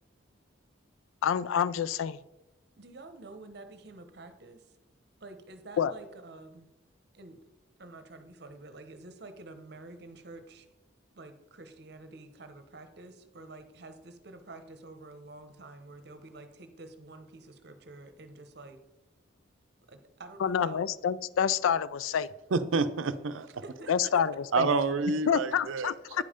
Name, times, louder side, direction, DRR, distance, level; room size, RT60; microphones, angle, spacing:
voice 1, 1.2-2.2 5.8-5.9 20.4-22.3 23.9-24.7 25.3-26.2, left 8 dB, 90° left, 18 dB, 0.3 m, -28 dB
voice 2, 2.8-4.7 5.2-6.7 7.1-7.4 7.8-10.7 11.1-18.8 19.9-20.9 23.6-24.1, right 2 dB, 55° right, 9 dB, 0.8 m, -48 dB
voice 3, 22.5-23.5 24.5-25.9 26.2-26.3, right 4 dB, 85° right, 12 dB, 0.5 m, -28 dB
9.3 x 5.4 x 5.0 m, 0.98 s
head